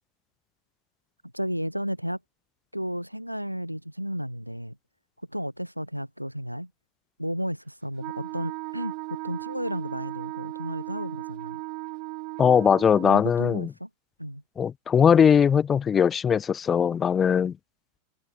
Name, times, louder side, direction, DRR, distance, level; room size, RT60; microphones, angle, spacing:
voice 1, 1.3-2.2 2.7-4.8 5.3-6.7 7.2-11.6 13.0-13.9 14.2-14.4, equal, 90° right, 1.1 m, -33 dB
Wind instrument woodwind instrument, 8.0-13.2, right 29 dB, 45° right, 0.6 m, -37 dB
voice 2, 12.4-13.7 14.6-17.6, left 7 dB, 20° left, 0.3 m, -20 dB
figure-of-eight pair, 90°, 0 cm